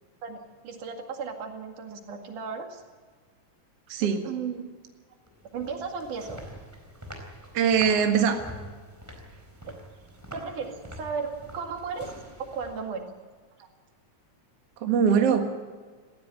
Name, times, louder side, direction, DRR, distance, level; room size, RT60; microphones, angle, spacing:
voice 1, 0.2-2.8 4.0-4.7 5.5-6.4 9.6-9.8 10.3-12.1 12.4-13.1, right 5 dB, 80° right, 4 dB, 3.6 m, -35 dB
voice 2, 3.9-4.2 7.5-8.4 14.8-15.4, right 7 dB, 55° right, 4 dB, 2.6 m, -22 dB
sound 1, 5.3-13.1, equal, 5° right, 3.7 m, -45 dB
18.5 x 15.5 x 9.7 m, 1.5 s
omnidirectional pair, 3.6 m